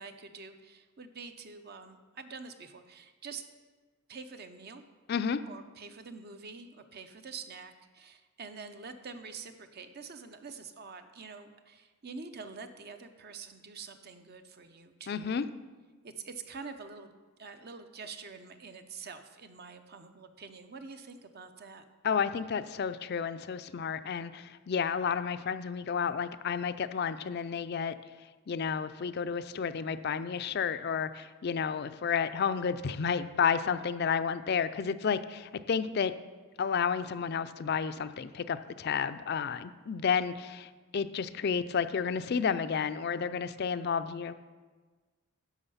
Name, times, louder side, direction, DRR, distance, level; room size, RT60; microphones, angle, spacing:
voice 1, 0.0-3.4 4.1-4.8 5.5-15.4 16.0-17.1 17.4-21.8, right 4 dB, 50° right, 8 dB, 0.7 m, -46 dB
voice 2, 5.1-5.4 15.1-15.5 22.0-27.9 28.5-36.1 36.6-44.3, left 6 dB, 50° left, 13 dB, 0.4 m, -31 dB
10.5 x 6.3 x 5.6 m, 1.4 s
head